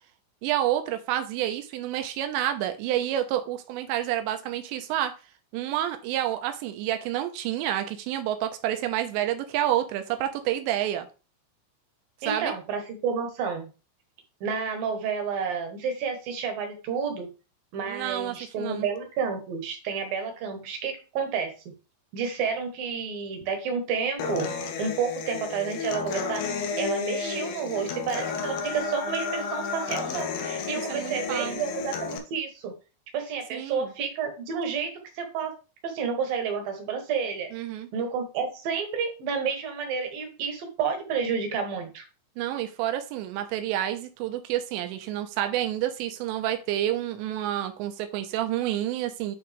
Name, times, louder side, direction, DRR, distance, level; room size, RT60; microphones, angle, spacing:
voice 1, 0.4-5.1 5.5-11.1 12.2-12.5 17.9-18.9 30.9-31.6 33.5-33.9 37.5-37.9 42.4-49.4, right 12 dB, 80° right, 7 dB, 2.9 m, -29 dB
voice 2, 12.2-13.7 14.4-17.3 17.7-21.7 22.1-26.4 26.8-32.7 33.1-35.5 35.8-37.5 37.9-42.0, right 6 dB, 65° right, 5 dB, 2.4 m, -30 dB
Human voice / Acoustic guitar, 24.2-32.2, left 5 dB, 80° left, 2.0 m, -32 dB
10.5 x 3.9 x 3.4 m, 0.32 s
omnidirectional pair, 5.5 m